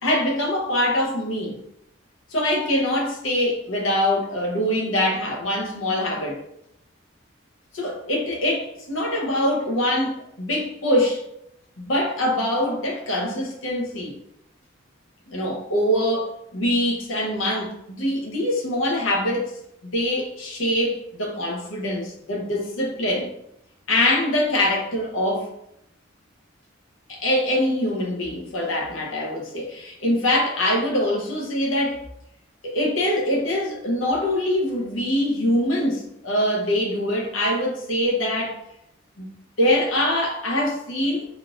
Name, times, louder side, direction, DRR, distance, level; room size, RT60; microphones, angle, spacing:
voice 1, 0.0-1.5 2.3-6.4 7.7-11.2 11.8-14.2 15.3-19.5 19.8-23.3 23.9-25.5 27.1-32.0 32.6-38.6 39.2-39.3 39.6-41.3, left 1 dB, 85° left, 0.8 m, -24 dB
3.7 x 2.4 x 2.4 m
head